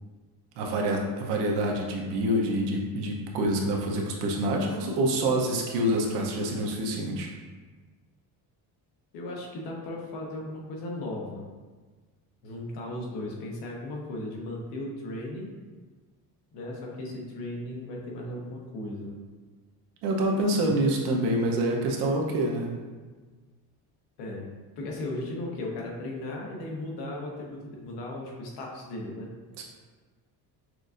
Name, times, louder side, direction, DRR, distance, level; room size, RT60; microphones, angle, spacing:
voice 1, 0.6-7.3 20.0-22.7 29.6-29.7, right 1 dB, 90° right, 0 dB, 0.8 m, -26 dB
voice 2, 9.1-11.4 12.4-15.5 16.5-19.2 20.6-20.7 24.2-24.5 24.8-29.3, left 1 dB, 80° left, -2 dB, 1.1 m, -36 dB
6.0 x 2.5 x 2.5 m, 1.4 s
cardioid pair, 180°, 39 cm